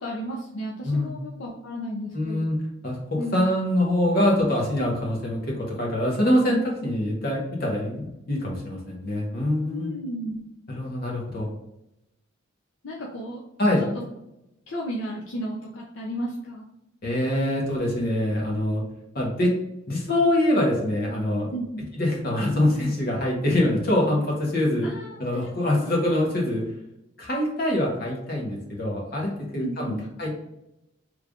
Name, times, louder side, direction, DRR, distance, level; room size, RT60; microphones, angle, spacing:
voice 1, 0.0-2.5 3.2-3.5 9.7-10.4 12.8-13.4 14.7-16.7 21.5-21.8 24.8-25.2 25.6-25.9 29.6-30.1, equal, 70° left, -3 dB, 0.5 m, -33 dB
voice 2, 2.1-2.6 2.8-9.9 10.7-11.5 13.6-13.8 17.0-18.8 19.1-19.5 19.9-21.5 22.0-26.6 27.2-30.3, left 1 dB, 45° left, -2 dB, 1.0 m, -24 dB
3.3 x 2.4 x 3.5 m, 0.86 s
head